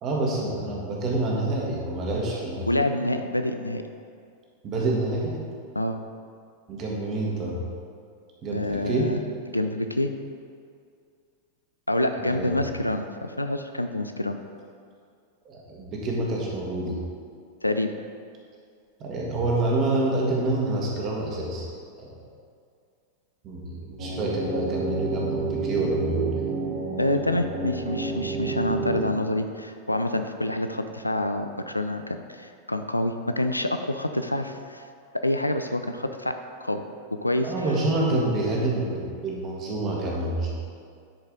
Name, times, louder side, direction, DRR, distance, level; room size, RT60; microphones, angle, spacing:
voice 1, 0.0-2.7 4.6-5.4 6.7-7.6 8.4-9.1 12.2-12.7 15.4-17.0 19.0-21.7 22.0-22.1 23.4-26.5 37.4-40.5, right 2 dB, 35° right, -2 dB, 1.7 m, -27 dB
voice 2, 2.7-3.8 5.8-6.0 8.5-9.2 9.5-10.1 11.9-14.4 17.6-17.9 27.0-34.9 35.2-36.8 37.1-37.5, left 1 dB, 85° left, 7 dB, 0.4 m, -27 dB
sound 1, 24.0-29.1, right 4 dB, 50° right, 1.7 m, -30 dB
10.0 x 4.8 x 3.8 m, 2.3 s
figure-of-eight pair, 90°, 0 cm